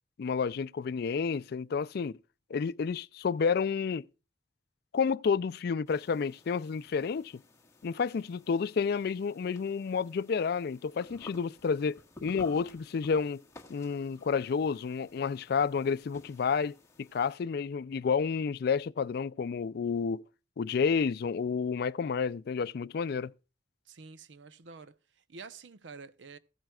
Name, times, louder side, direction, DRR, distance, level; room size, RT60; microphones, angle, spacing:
voice 1, 0.2-2.1 2.5-4.0 4.9-7.4 7.8-13.4 13.7-20.2 20.6-23.3, left 5 dB, 60° left, 0.4 m, -30 dB
sound 1, 5.9-17.4, left 2 dB, 15° left, 1.4 m, -55 dB
voice 2, 23.9-26.4, right 4 dB, 85° right, 0.8 m, -49 dB
15.5 x 9.0 x 2.3 m
head